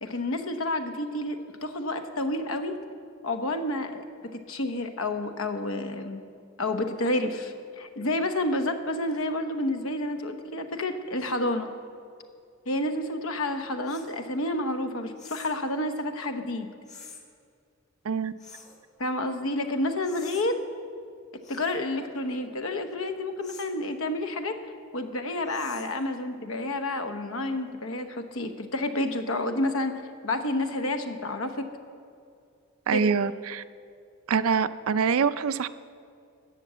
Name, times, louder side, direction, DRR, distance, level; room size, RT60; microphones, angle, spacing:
voice 1, 0.0-2.8 3.2-6.2 6.6-11.7 12.7-16.7 19.0-20.6 21.5-24.6 24.9-31.7 32.9-33.1, left 1 dB, 75° left, 7 dB, 1.0 m, -30 dB
sound 1, 13.9-14.1 15.2-15.6 16.9-17.2 18.4-18.8 20.0-20.5 21.4-21.8 23.4-23.8 25.5-26.0, left 5 dB, 35° left, 1.4 m, -47 dB
voice 2, 32.9-33.6 34.3-35.7, right 6 dB, 80° right, 13 dB, 0.4 m, -25 dB
12.0 x 8.2 x 7.4 m, 2.4 s
head